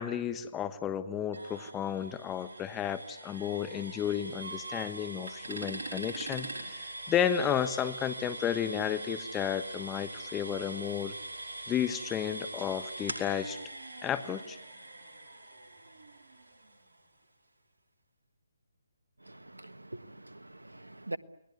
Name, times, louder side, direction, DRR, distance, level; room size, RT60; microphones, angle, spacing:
voice 1, 0.0-11.1 11.7-13.6 14.0-14.6, left 9 dB, 15° left, 1.3 m, -32 dB
sound 1, 1.3-17.0, right 2 dB, 70° right, 5.3 m, -43 dB
voice 2, 19.2-21.2, right 1 dB, 90° right, 1.5 m, -43 dB
29.5 x 20.0 x 9.5 m
figure-of-eight pair, 145°, 0 cm